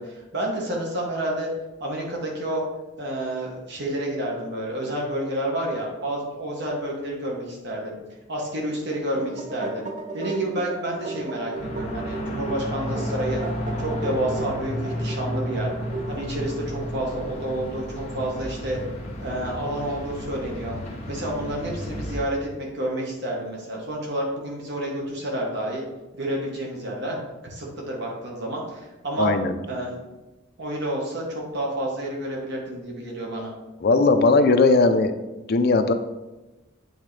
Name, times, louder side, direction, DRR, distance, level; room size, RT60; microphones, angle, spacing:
voice 1, 0.0-1.5 1.8-2.6 3.0-7.9 8.3-9.9 10.1-13.4 13.8-15.7 16.1-18.8 19.2-20.7 21.1-25.8 26.1-27.2 27.4-29.3 29.7-29.9 30.6-33.5, right 1 dB, 60° right, -2 dB, 1.3 m, -29 dB
sound 1, 8.9-16.5, right 2 dB, 40° right, 0.6 m, -36 dB
sound 2, 11.5-22.2, equal, 35° left, 1.1 m, -32 dB
voice 2, 29.2-29.6 33.8-35.1 35.5-35.9, left 3 dB, 50° left, 8 dB, 0.5 m, -18 dB
8.0 x 3.7 x 3.2 m, 1.1 s
head